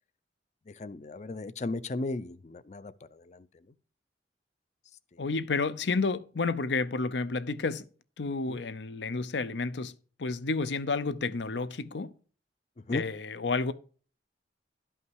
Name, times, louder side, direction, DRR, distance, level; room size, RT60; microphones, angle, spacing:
voice 1, 0.8-3.4 8.5-8.6 12.9-13.0, left 2 dB, 40° left, 0.5 m, -36 dB
voice 2, 5.2-7.8 8.2-9.9 10.2-12.1 12.9-13.7, left 4 dB, 75° left, 0.7 m, -30 dB
12.0 x 5.6 x 4.7 m
head